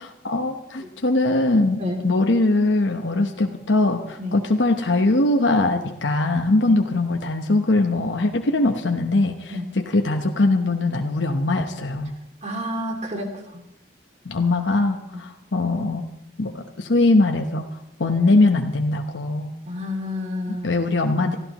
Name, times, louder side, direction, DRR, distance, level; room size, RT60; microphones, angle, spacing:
voice 1, 0.2-12.1 14.2-16.1 16.4-17.6 18.0-19.5 20.5-21.4, left 2 dB, 85° left, 3 dB, 1.0 m, -21 dB
voice 2, 12.4-13.6 15.1-15.2 19.7-20.7, left 1 dB, 35° right, 2 dB, 2.6 m, -30 dB
25.5 x 14.0 x 3.0 m, 0.82 s
head